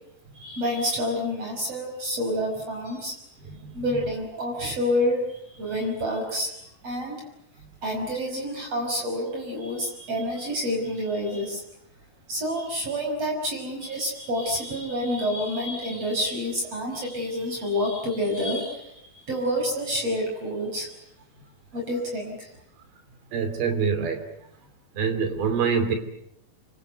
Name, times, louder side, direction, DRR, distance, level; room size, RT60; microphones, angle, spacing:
voice 1, 0.3-3.1 3.7-5.2 5.5-6.5 6.8-7.2 7.8-11.6 12.3-20.9 21.7-22.5, equal, 40° right, 1 dB, 6.4 m, -28 dB
voice 2, 23.3-24.2 24.9-26.0, right 6 dB, 85° right, 8 dB, 4.8 m, -25 dB
27.0 x 25.0 x 7.9 m, 0.74 s
omnidirectional pair, 4.3 m